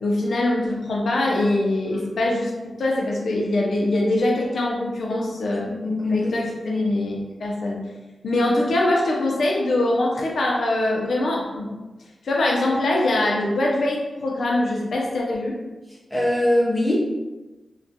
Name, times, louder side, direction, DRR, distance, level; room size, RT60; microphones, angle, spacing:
voice 1, 0.0-5.6 6.1-7.8 8.2-11.7 12.2-15.6, left 1 dB, 70° left, -2 dB, 0.5 m, -23 dB
voice 2, 5.7-6.9 16.1-16.9, left 1 dB, 10° left, -6 dB, 0.7 m, -23 dB
2.3 x 2.2 x 2.7 m, 1.1 s
wide cardioid pair, 150°, 0 cm